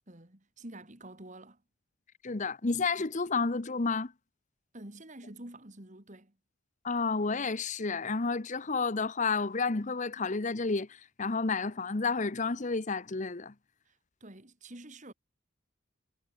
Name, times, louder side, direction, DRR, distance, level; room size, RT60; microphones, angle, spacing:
voice 1, 0.1-1.6 4.7-6.4 13.8-15.1, right 1 dB, 35° right, 2.7 m, -48 dB
voice 2, 2.2-4.1 6.8-13.5, left 4 dB, 35° left, 0.8 m, -31 dB
head